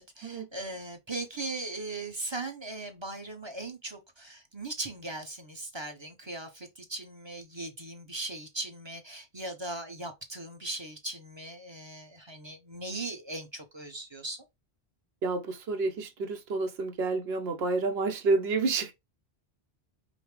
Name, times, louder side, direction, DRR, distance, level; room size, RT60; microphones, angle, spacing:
voice 1, 0.0-14.4, right 2 dB, 30° right, 0.8 m, -39 dB
voice 2, 15.2-18.9, right 3 dB, 80° right, 1.0 m, -29 dB
5.1 x 2.0 x 3.2 m
omnidirectional pair, 1.1 m